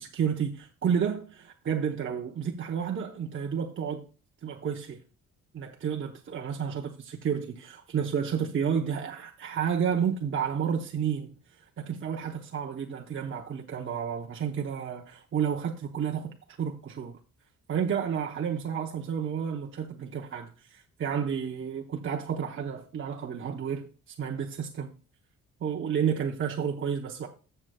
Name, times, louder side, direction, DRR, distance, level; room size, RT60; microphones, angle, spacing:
voice 1, 0.0-4.1 4.4-5.0 5.5-16.3 16.6-17.2 17.7-24.9 25.6-27.3, right 7 dB, 40° right, 0.8 m, -31 dB
14.5 x 6.7 x 2.3 m
cardioid pair, 90°, 30 cm